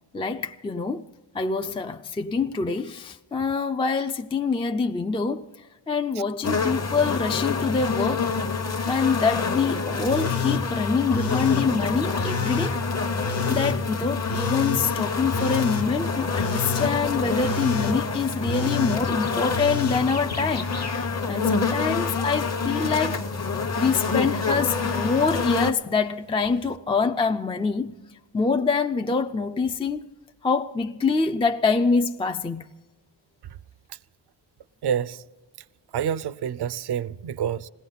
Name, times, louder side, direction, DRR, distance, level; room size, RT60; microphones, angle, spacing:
voice 1, 0.1-1.0 1.3-5.5 5.9-8.3 8.9-12.8 13.5-20.7 21.3-23.2 23.8-27.9 28.3-30.1 30.4-32.6, left 4 dB, 15° left, 0.4 m, -25 dB
sound 1, 6.4-25.7, left 4 dB, 35° left, 0.9 m, -27 dB
Telephone, 10.1-10.6 11.1-11.7 12.2-12.7 13.2-13.8 14.3-14.8 15.3-15.9 16.4-16.9 17.4-18.0 18.5-19.0 19.5-21.1 21.4-22.1 22.7-23.2 23.7-24.2 24.8-25.3 26.5-26.6, left 5 dB, 65° left, 0.9 m, -31 dB
voice 2, 34.8-35.2 35.9-37.7, right 8 dB, 60° right, 0.5 m, -27 dB
21.0 x 17.0 x 3.9 m
cardioid pair, 75°, 46 cm